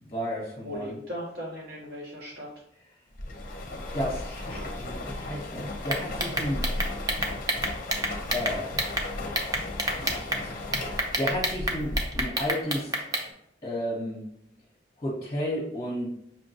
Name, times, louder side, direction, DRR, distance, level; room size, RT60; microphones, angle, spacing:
voice 1, 0.0-1.0 3.9-6.7 8.3-8.9 10.0-13.0 13.6-14.2 15.0-16.1, equal, 30° left, -5 dB, 1.0 m, -33 dB
voice 2, 0.6-2.5 4.5-4.8, equal, 60° right, -3 dB, 0.9 m, -38 dB
sound 1, 3.2-12.5, left 1 dB, 50° left, 0.6 m, -35 dB
sound 2, 5.8-9.0 9.3-10.4 10.7-13.3, right 1 dB, 20° right, 0.5 m, -28 dB
5.6 x 2.2 x 2.7 m, 0.77 s
head